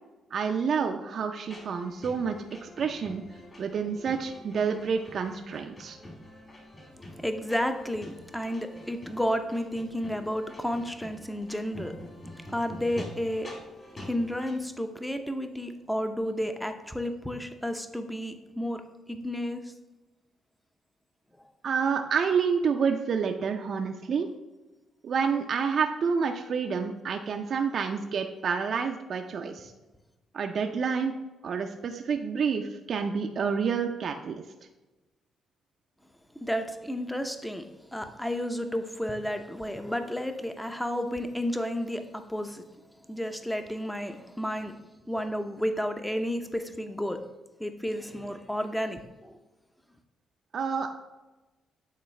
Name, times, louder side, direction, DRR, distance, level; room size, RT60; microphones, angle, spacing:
voice 1, 0.3-3.2 3.6-6.0 21.6-24.3 25.0-29.7 30.3-31.1 31.4-34.4 50.5-50.9, right 6 dB, 55° right, 4 dB, 0.4 m, -28 dB
sound 1, 1.4-14.6, left 1 dB, 35° left, 1.9 m, -46 dB
voice 2, 7.2-12.0 12.5-13.5 13.9-18.8 19.1-19.7 36.4-42.6 43.1-44.7 45.1-47.3 47.6-49.4, equal, 5° left, 7 dB, 0.6 m, -32 dB
8.6 x 3.8 x 3.2 m, 1.1 s
cardioid pair, 90°, 0 cm